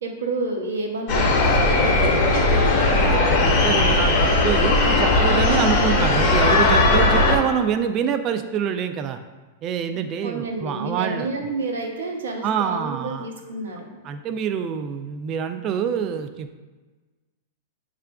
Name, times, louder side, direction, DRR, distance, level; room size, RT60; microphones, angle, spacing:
voice 1, 0.0-2.1 5.4-5.6 9.9-14.0, right 3 dB, 90° right, 1 dB, 0.7 m, -30 dB
sound 1, 1.1-7.4, left 2 dB, 45° left, 0.8 m, -18 dB
voice 2, 3.0-9.2 9.6-11.3 12.4-13.3 14.0-16.6, right 8 dB, 35° right, 8 dB, 0.3 m, -26 dB
6.5 x 2.4 x 2.3 m, 1.3 s
hypercardioid pair, 130°, 0 cm